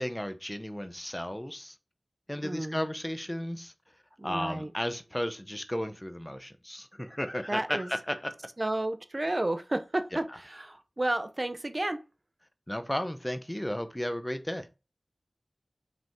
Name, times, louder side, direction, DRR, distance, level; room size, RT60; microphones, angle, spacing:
voice 1, 0.0-1.7 2.3-3.7 4.2-8.3 10.1-10.2 12.7-14.7, equal, 15° left, 0.8 m, -34 dB
voice 2, 2.4-2.8 4.2-4.7 7.5-7.9 8.6-12.0, right 1 dB, 35° right, 0.6 m, -31 dB
6.0 x 5.1 x 3.6 m
wide cardioid pair, 60°, 0 cm